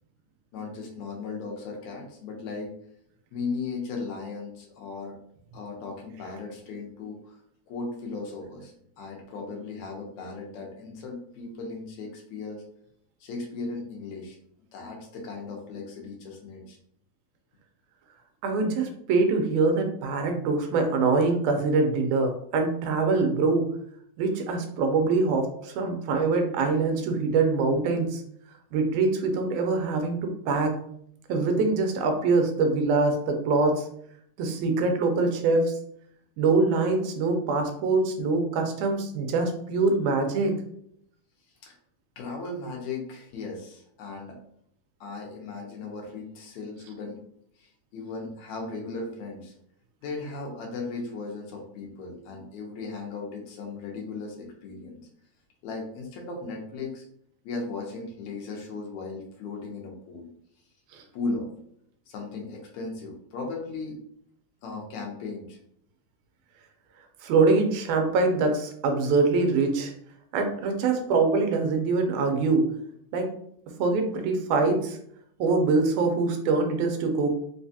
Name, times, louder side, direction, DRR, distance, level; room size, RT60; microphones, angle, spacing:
voice 1, 0.5-2.7 3.3-5.2 5.5-7.4 7.7-12.6 13.2-14.4 14.7-16.8 41.6-41.7 42.2-44.4 45.0-47.2 47.6-49.5 50.0-55.0 55.6-57.0 57.4-60.3 61.1-61.5 62.1-64.0 64.6-65.6, left 3 dB, 75° left, 0 dB, 2.1 m, -37 dB
voice 2, 18.4-23.6 24.2-28.2 28.7-30.7 31.3-33.9 34.4-35.8 36.4-40.6 60.9-61.0 67.2-69.9 70.3-72.7 73.1-73.3 73.8-75.0 75.4-77.3, right 3 dB, 90° right, 4 dB, 2.1 m, -24 dB
5.1 x 2.3 x 2.7 m, 0.68 s
omnidirectional pair, 3.4 m